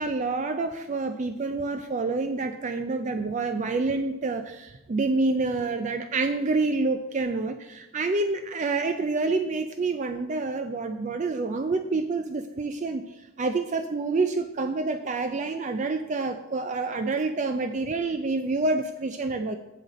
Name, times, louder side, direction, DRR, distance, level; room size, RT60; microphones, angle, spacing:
voice 1, 0.0-19.6, right 3 dB, 35° right, 8 dB, 0.3 m, -28 dB
8.3 x 7.6 x 4.1 m, 1.0 s
head